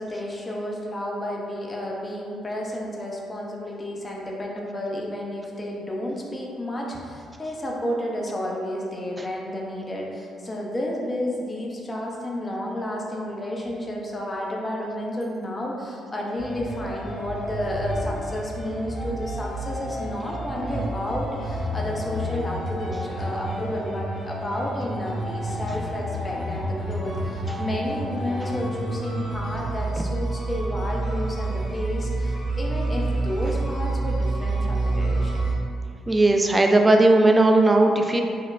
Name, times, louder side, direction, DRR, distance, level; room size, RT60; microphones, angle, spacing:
voice 1, 0.0-35.5, left 1 dB, 30° left, -2 dB, 0.7 m, -31 dB
sound 1, 16.4-35.5, right 2 dB, 50° left, 1.2 m, -29 dB
voice 2, 36.1-38.2, right 2 dB, 20° right, 3 dB, 0.4 m, -17 dB
4.5 x 2.2 x 2.5 m, 2.3 s
hypercardioid pair, 45°, 0 cm